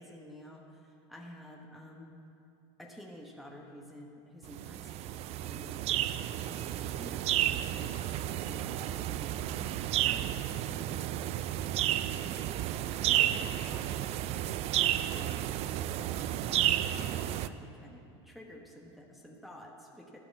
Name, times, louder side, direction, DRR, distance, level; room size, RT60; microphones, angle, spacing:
voice 1, 0.0-2.2 2.8-6.0 6.5-9.5 10.0-12.2 13.0-20.2, equal, ahead, -1 dB, 1.1 m, -50 dB
sound 1, 4.5-17.5, right 12 dB, 45° right, 0.4 m, -32 dB
12.0 x 5.3 x 8.1 m, 2.7 s
supercardioid pair, 105°, 15 cm